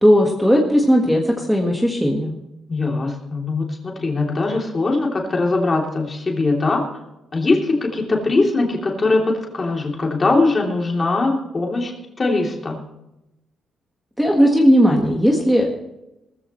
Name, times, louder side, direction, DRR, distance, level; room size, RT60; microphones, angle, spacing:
voice 1, 0.0-2.3 14.2-15.7, equal, ahead, 0 dB, 1.6 m, -16 dB
voice 2, 2.7-6.8 7.3-11.9 12.2-12.8, left 3 dB, 25° left, -1 dB, 3.1 m, -21 dB
19.0 x 14.5 x 3.2 m, 0.91 s
cardioid pair, 155°, 0 cm